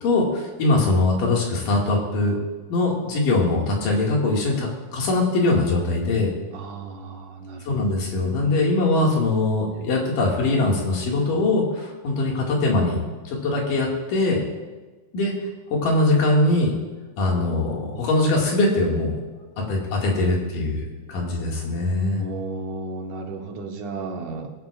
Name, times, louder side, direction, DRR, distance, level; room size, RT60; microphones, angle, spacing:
voice 1, 0.0-2.4 2.7-6.3 7.7-13.0 13.3-14.4 15.1-15.3 15.7-16.8 17.2-19.2 19.6-20.8 21.1-22.2, left 2 dB, 75° left, -2 dB, 3.5 m, -22 dB
voice 2, 6.5-7.7 22.2-24.5, right 3 dB, 70° right, 2 dB, 2.5 m, -33 dB
22.0 x 9.4 x 2.4 m, 1.3 s
omnidirectional pair, 3.8 m